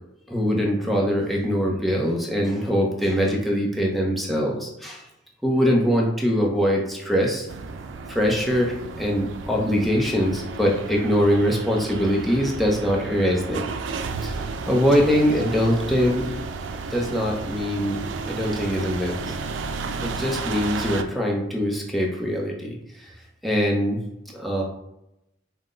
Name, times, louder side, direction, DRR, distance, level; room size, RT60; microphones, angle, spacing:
voice 1, 0.3-5.0 5.4-7.5 8.1-13.7 14.2-16.3 16.9-18.0 18.3-19.2 20.0-22.8 23.0-23.1 23.4-24.0 24.3-24.6, equal, ahead, -2 dB, 0.7 m, -23 dB
sound 1, 7.5-21.0, right 4 dB, 80° right, 0.4 m, -33 dB
5.6 x 2.2 x 3.8 m, 0.86 s
head